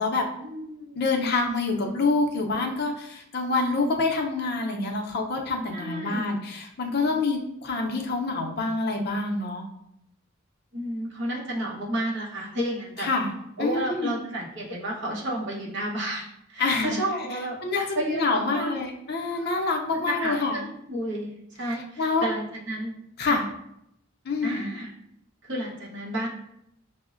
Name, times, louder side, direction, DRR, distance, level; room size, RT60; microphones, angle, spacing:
voice 1, 0.4-1.1 5.7-6.2 10.7-13.1 13.6-18.8 19.3-22.9 23.2-23.4 24.4-24.9 25.4-26.3, right 1 dB, 60° right, -3 dB, 0.9 m, -32 dB
voice 2, 1.0-9.6 13.0-13.3 13.6-14.1 16.6-17.0 17.6-20.6 22.0-22.3 23.2-23.4 24.3-24.7, left 3 dB, 50° left, 1 dB, 0.5 m, -26 dB
6.2 x 2.1 x 2.4 m, 0.79 s
head